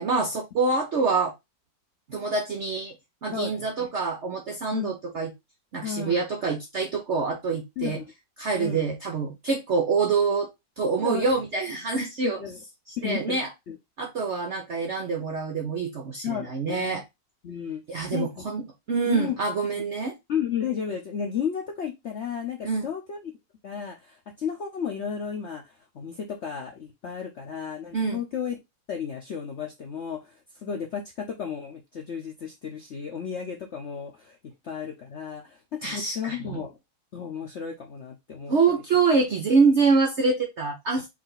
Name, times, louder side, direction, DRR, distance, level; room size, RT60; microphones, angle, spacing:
voice 1, 0.0-1.3 2.1-2.9 3.2-5.3 5.7-8.0 8.4-10.5 10.8-12.4 13.0-13.5 14.0-17.0 17.9-20.2 22.6-22.9 27.9-28.2 35.8-36.6 38.5-41.1, right 4 dB, 65° right, 3 dB, 0.6 m, -25 dB
voice 2, 3.3-3.9 4.7-4.9 5.8-6.2 7.8-8.0 8.6-8.8 11.0-11.3 12.2-12.6 13.0-13.4 13.7-13.8 16.2-17.0 17.4-17.8 18.1-18.5 19.1-19.3 20.3-23.3 23.6-28.5 28.9-34.4 34.6-36.7 37.1-38.5, left 7 dB, 65° left, 1 dB, 0.7 m, -33 dB
4.7 x 2.7 x 3.9 m, 0.21 s
omnidirectional pair, 2.0 m